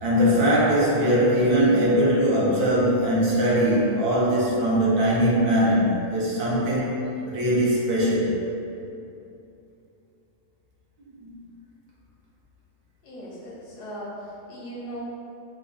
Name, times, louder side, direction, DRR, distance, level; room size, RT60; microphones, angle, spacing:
voice 1, 0.0-7.0 7.3-8.3 11.2-11.3, equal, 70° right, -6 dB, 1.4 m, -21 dB
voice 2, 13.0-15.0, equal, 85° left, -5 dB, 1.5 m, -38 dB
4.7 x 2.3 x 4.1 m, 2.8 s
omnidirectional pair, 1.7 m